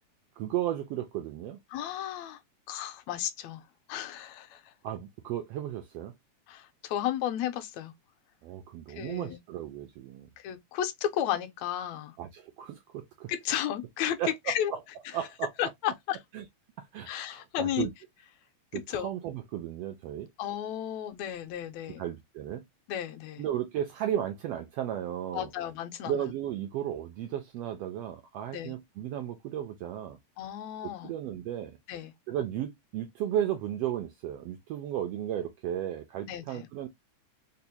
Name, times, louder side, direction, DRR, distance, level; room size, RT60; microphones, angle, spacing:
voice 1, 0.4-1.6 4.8-6.1 8.4-10.3 12.2-13.3 14.2-14.8 15.1-15.5 16.3-16.4 16.8-17.9 18.7-20.3 22.0-22.6 23.4-25.5 26.1-30.2 30.8-31.8 32.3-36.9, right 11 dB, 90° right, 1.4 m, -34 dB
voice 2, 1.7-2.4 2.7-3.6 3.9-4.7 6.5-7.9 8.9-9.4 10.4-12.1 13.3-14.2 14.5-14.7 15.1-15.2 15.6-16.2 17.1-17.9 18.7-19.1 20.4-22.0 22.9-23.4 25.3-26.3 28.5-28.7 30.4-31.1 31.9-32.1 36.3-36.7, left 11 dB, 75° left, 1.8 m, -33 dB
4.9 x 2.0 x 2.7 m
omnidirectional pair, 3.3 m